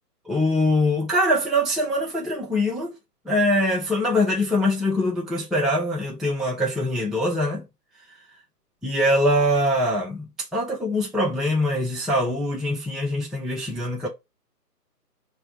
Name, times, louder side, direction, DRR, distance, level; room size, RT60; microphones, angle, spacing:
voice 1, 0.3-2.9 3.3-7.7 8.8-10.3 10.5-14.1, left 1 dB, ahead, 0.4 m, -23 dB
5.1 x 2.1 x 2.6 m
hypercardioid pair, 175°, 49 cm